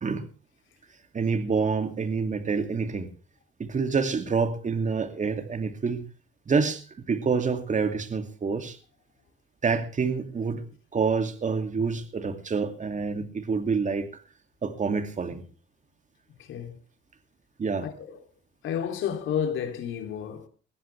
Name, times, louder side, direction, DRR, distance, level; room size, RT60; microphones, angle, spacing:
voice 1, 1.1-3.1 3.6-6.1 6.5-8.8 9.6-10.6 10.9-14.2 14.6-15.4 17.6-17.9, right 5 dB, 40° right, 2.5 m, -27 dB
voice 2, 16.4-16.8 17.8-18.2 18.6-20.5, left 8 dB, 80° left, 3.0 m, -31 dB
20.5 x 15.0 x 3.4 m
cardioid pair, 90°, 20 cm